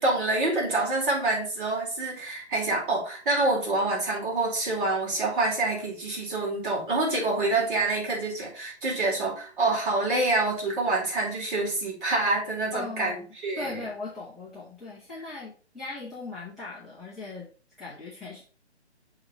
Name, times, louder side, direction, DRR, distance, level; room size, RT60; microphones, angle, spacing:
voice 1, 0.0-13.8, right 2 dB, 50° right, -4 dB, 4.4 m, -27 dB
voice 2, 12.7-13.3 13.6-17.5 17.8-18.4, left 3 dB, ahead, -9 dB, 1.2 m, -39 dB
7.1 x 3.9 x 5.9 m, 0.41 s
hypercardioid pair, 155°, 34 cm